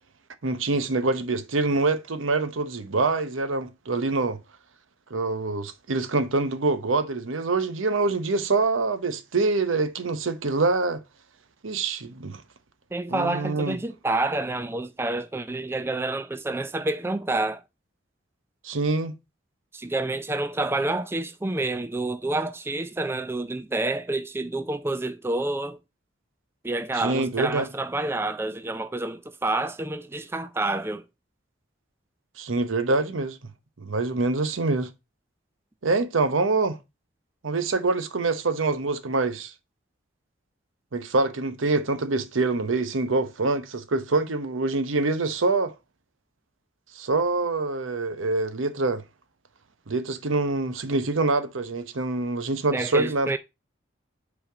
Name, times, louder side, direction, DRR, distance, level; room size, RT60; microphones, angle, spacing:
voice 1, 0.4-4.4 5.1-11.0 11.6-12.4 13.1-13.8 18.6-19.1 26.9-27.7 32.4-33.4 33.8-34.9 35.8-36.8 37.4-39.5 40.9-45.7 46.9-49.0 49.9-53.4, right 3 dB, 90° right, 0.8 m, -25 dB
voice 2, 12.9-17.6 19.7-25.8 26.6-31.0 52.7-53.4, right 2 dB, 10° right, 0.3 m, -28 dB
5.5 x 4.2 x 5.0 m
head